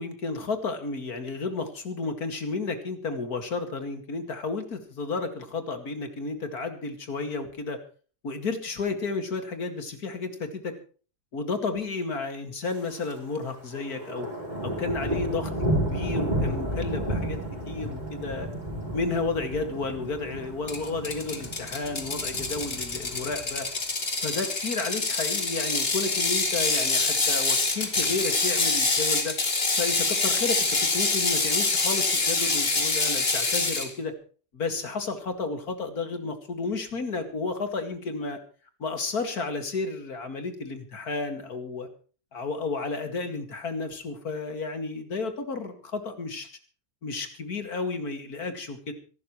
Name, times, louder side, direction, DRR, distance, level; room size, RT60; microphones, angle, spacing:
voice 1, 0.0-7.8 8.2-10.7 11.3-14.3 14.6-15.5 15.9-17.4 17.7-18.5 18.9-23.7 24.2-29.4 29.8-34.1 34.5-38.4 38.8-41.9 42.3-46.5 47.0-48.9, left 3 dB, 70° left, 7 dB, 2.7 m, -32 dB
Thunder, 12.6-13.2 13.5-23.8 24.2-24.6 25.0-25.4 25.7-25.8 26.0-26.1 26.5-27.0 27.8-28.7, right 1 dB, 25° right, 4.7 m, -32 dB
Ratchet pawl, 20.7-33.9, left 3 dB, 40° left, 2.4 m, -26 dB
25.5 x 12.5 x 3.2 m, 0.39 s
omnidirectional pair, 1.7 m